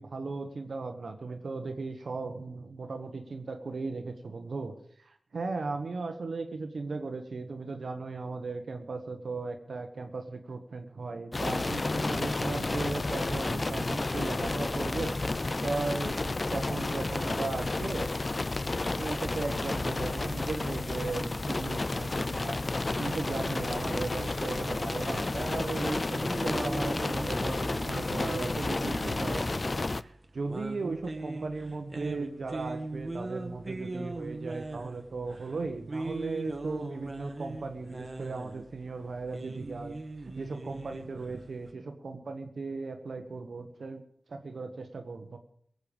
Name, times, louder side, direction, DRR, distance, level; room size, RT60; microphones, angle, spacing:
voice 1, 0.0-15.2 15.6-18.2 18.8-22.7 23.0-40.0 40.2-44.0 44.3-45.4, right 3 dB, 80° right, 6 dB, 1.3 m, -37 dB
sound 1, 11.3-30.0, left 2 dB, 45° left, 0.5 m, -31 dB
sound 2, 26.2-41.7, right 2 dB, 40° right, 1.6 m, -40 dB
17.5 x 8.1 x 7.1 m, 0.64 s
cardioid pair, 45°, 0 cm